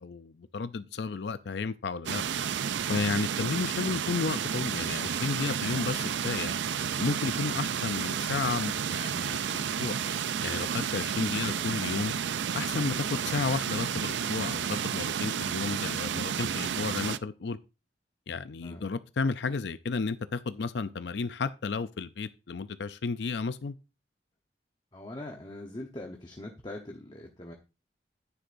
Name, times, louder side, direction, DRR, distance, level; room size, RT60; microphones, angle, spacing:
voice 1, 0.0-2.2 2.9-6.5 7.0-9.9 10.4-12.1 12.5-17.6 18.3-23.8, left 4 dB, 70° left, 0.5 m, -32 dB
sound 1, 2.1-17.2, right 8 dB, 80° right, 0.5 m, -31 dB
voice 2, 24.9-27.6, left 1 dB, 25° left, 1.0 m, -42 dB
9.9 x 9.7 x 2.6 m
head